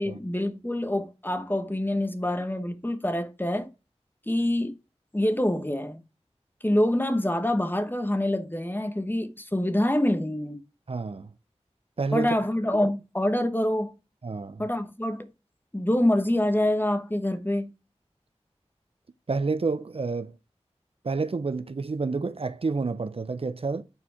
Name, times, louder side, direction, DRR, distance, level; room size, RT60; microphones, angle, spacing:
voice 1, 0.0-3.7 4.3-4.8 5.1-6.0 6.6-10.6 12.1-13.9 14.6-15.3 15.7-17.7, left 1 dB, 15° left, 1.1 m, -26 dB
voice 2, 10.9-11.3 12.0-12.3 14.2-14.7 19.3-20.4 21.0-23.8, right 4 dB, 55° right, 0.5 m, -29 dB
7.0 x 4.4 x 4.3 m
wide cardioid pair, 40°, 12 cm